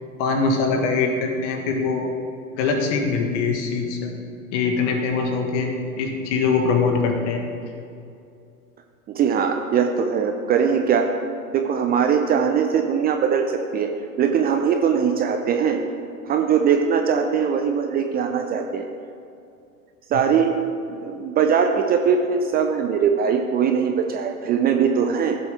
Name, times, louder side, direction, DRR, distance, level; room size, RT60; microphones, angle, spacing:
voice 1, 0.2-2.1 2.5-4.1 4.5-7.4, left 4 dB, 50° left, 3 dB, 1.8 m, -22 dB
voice 2, 9.1-11.1 11.5-13.9 14.2-15.8 16.2-18.9 20.1-20.5 21.0-25.4, right 7 dB, 20° right, 4 dB, 0.5 m, -21 dB
15.5 x 7.0 x 3.6 m, 2.5 s
figure-of-eight pair, 95°, 44 cm